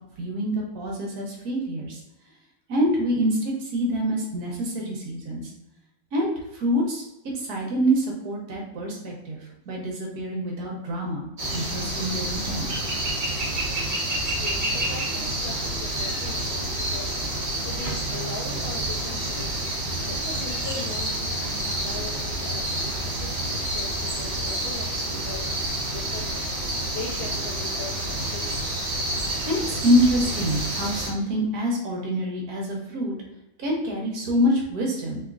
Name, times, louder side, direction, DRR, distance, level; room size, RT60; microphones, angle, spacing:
voice 1, 0.2-2.0 2.7-5.5 6.1-7.0 7.3-11.2 11.5-12.7 29.4-33.1 33.6-35.2, equal, 65° right, -1 dB, 1.4 m, -26 dB
sound 1, 11.4-31.1, right 1 dB, 40° right, 0.7 m, -28 dB
voice 2, 14.3-19.5 20.1-28.7, left 3 dB, 75° left, -3 dB, 0.5 m, -40 dB
4.3 x 2.9 x 2.5 m, 0.93 s
omnidirectional pair, 1.8 m